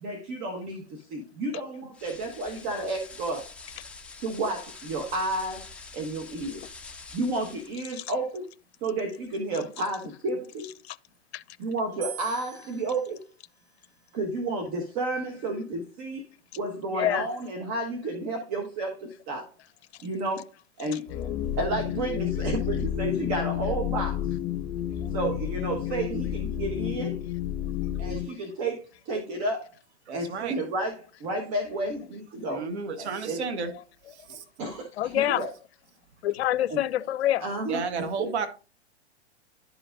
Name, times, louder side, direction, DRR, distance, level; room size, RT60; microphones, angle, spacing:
voice 1, 0.0-3.4 4.2-5.7 5.9-6.7 7.1-8.5 8.8-10.7 11.6-13.2 14.1-16.3 16.6-19.5 20.0-20.5 20.8-21.0 21.5-24.2 25.1-27.2 28.0-29.7 30.1-32.7 33.0-33.5 34.6-35.5 36.7-36.8 37.4-37.8 38.2-38.3, right 2 dB, 40° right, 1.3 m, -31 dB
sound 1, 1.9-7.8, left 4 dB, 5° left, 0.3 m, -46 dB
voice 2, 7.8-8.2 9.5-9.8 10.6-11.0 11.3-11.4 12.9-13.0 16.9-17.3 20.9-21.4 22.1-22.2 25.9-26.0 33.7-34.1 35.0-35.5 36.2-37.5, left 12 dB, 65° left, 0.6 m, -29 dB
sound 2, 12.0-15.2, right 6 dB, 90° right, 1.3 m, -47 dB
sound 3, 21.1-28.3, left 11 dB, 40° left, 1.8 m, -30 dB
voice 3, 30.1-30.6 32.5-33.7 34.1-34.4 37.7-38.5, right 5 dB, 70° right, 1.3 m, -32 dB
12.0 x 5.0 x 2.5 m
hypercardioid pair, 120°, 34 cm